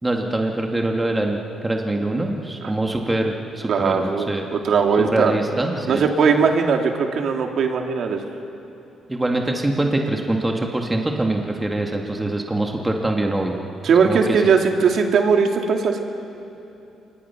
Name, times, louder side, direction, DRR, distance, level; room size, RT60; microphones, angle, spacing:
voice 1, 0.0-4.5 5.0-6.1 9.1-13.6 14.0-14.2, right 1 dB, 15° right, 1 dB, 2.1 m, -24 dB
voice 2, 3.7-5.4 5.9-8.2 13.8-16.0, right 5 dB, 65° right, 3 dB, 2.3 m, -19 dB
27.0 x 22.5 x 5.9 m, 2.8 s
cardioid pair, 90°, 0 cm